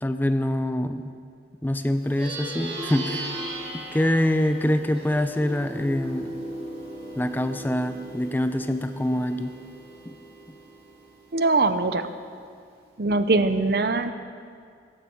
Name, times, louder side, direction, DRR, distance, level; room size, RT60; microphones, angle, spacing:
voice 1, 0.0-1.1 1.6-3.3 3.9-6.4 7.2-9.6 10.1-10.2, left 1 dB, 10° left, 9 dB, 0.5 m, -25 dB
Plucked string instrument, 2.0-11.7, right 1 dB, 30° right, 3.1 m, -37 dB
voice 2, 11.3-12.1 13.0-14.1, right 3 dB, 60° right, 11 dB, 0.7 m, -22 dB
15.5 x 15.0 x 4.5 m, 2.2 s
head